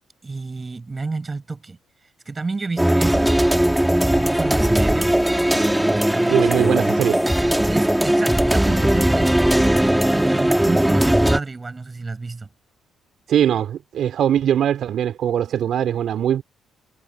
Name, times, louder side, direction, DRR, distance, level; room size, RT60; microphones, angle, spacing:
voice 1, 0.2-1.8 2.3-3.4 3.9-5.2 5.8-6.5 7.6-9.8 10.1-12.5, right 3 dB, 30° right, 6.9 m, -30 dB
sound 1, 2.8-11.4, right 1 dB, 5° right, 3.6 m, -18 dB
voice 2, 6.3-7.2 13.3-16.4, right 10 dB, 65° right, 4.0 m, -21 dB
hypercardioid pair, 50°, 0 cm